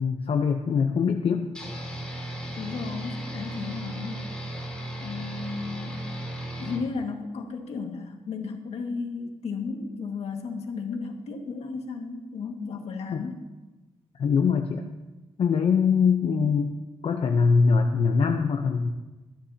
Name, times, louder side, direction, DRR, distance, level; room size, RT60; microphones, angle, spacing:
voice 1, 0.0-1.5 13.1-13.3 14.2-14.9 15.4-16.8 17.0-18.9, left 5 dB, 55° left, 4 dB, 0.8 m, -23 dB
sound 1, 1.5-6.8, right 1 dB, 10° left, 3.8 m, -35 dB
voice 2, 2.6-4.3 5.0-6.0 6.6-13.4, left 4 dB, 75° left, 2 dB, 1.9 m, -34 dB
20.0 x 13.5 x 2.9 m, 1.1 s
cardioid pair, 125°, 11 cm